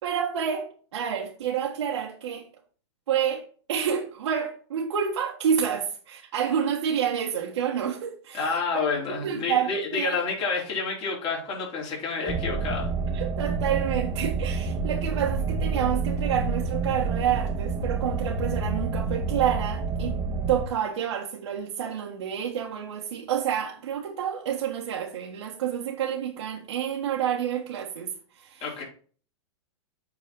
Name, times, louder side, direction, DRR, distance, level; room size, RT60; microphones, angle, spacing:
voice 1, 0.0-2.5 3.1-8.8 9.2-10.2 13.1-20.2 20.5-28.7, right 8 dB, 75° right, 1.6 m, -29 dB
voice 2, 8.3-12.9 28.6-28.8, left 4 dB, 35° left, 4.0 m, -29 dB
sound 1, 12.3-20.7, right 4 dB, 20° right, 1.4 m, -28 dB
8.4 x 4.2 x 5.5 m
hypercardioid pair, 135°, 15 cm